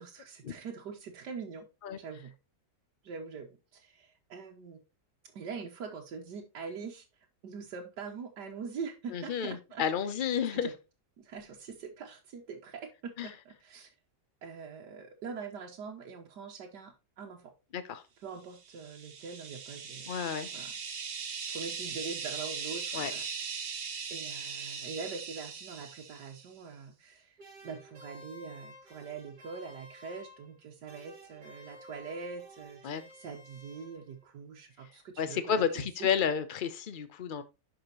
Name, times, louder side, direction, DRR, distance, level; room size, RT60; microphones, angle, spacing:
voice 1, 0.0-1.7 2.0-2.3 3.0-4.8 5.3-7.0 7.4-9.8 10.5-10.7 11.2-13.9 14.4-17.5 18.2-20.1 20.5-20.7 21.5-23.7 24.1-27.3 27.6-36.1, right 5 dB, 90° right, 1.7 m, -43 dB
voice 2, 9.1-10.7 13.2-13.3 17.7-18.0 20.1-20.5 22.9-23.1 32.8-33.1 35.2-37.4, left 7 dB, 65° left, 0.5 m, -31 dB
sound 1, 18.7-26.5, right 6 dB, 45° right, 0.9 m, -39 dB
sound 2, 27.4-30.6 30.9-34.3, equal, 65° right, 2.4 m, -53 dB
11.0 x 5.0 x 2.9 m
omnidirectional pair, 1.8 m